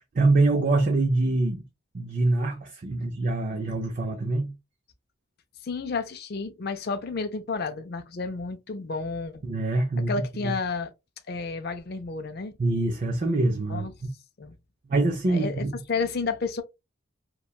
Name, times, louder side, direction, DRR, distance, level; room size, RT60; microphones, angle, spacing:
voice 1, 0.0-1.6 1.9-4.5 9.4-10.1 10.4-10.5 12.6-13.9 14.9-15.7, right 2 dB, 40° right, 0.4 m, -24 dB
voice 2, 5.6-9.4 10.1-10.9 11.3-12.5 13.7-13.9 14.4-14.6 15.3-16.6, left 4 dB, 50° left, 0.4 m, -31 dB
2.8 x 2.2 x 2.2 m
head